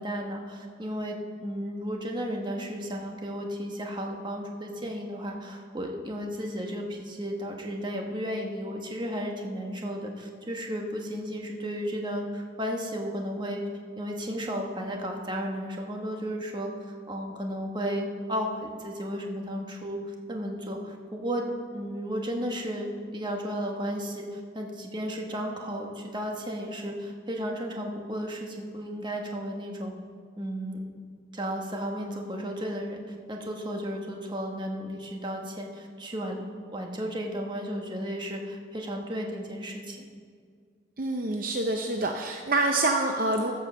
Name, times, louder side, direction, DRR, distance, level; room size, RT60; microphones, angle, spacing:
voice 1, 0.0-13.6 14.0-21.5 21.7-29.9 30.4-30.8 31.3-36.4 36.7-40.0, equal, 25° right, 1 dB, 1.2 m, -34 dB
voice 2, 41.0-43.5, right 2 dB, 50° right, 3 dB, 0.6 m, -26 dB
15.0 x 5.5 x 6.8 m, 2.1 s
head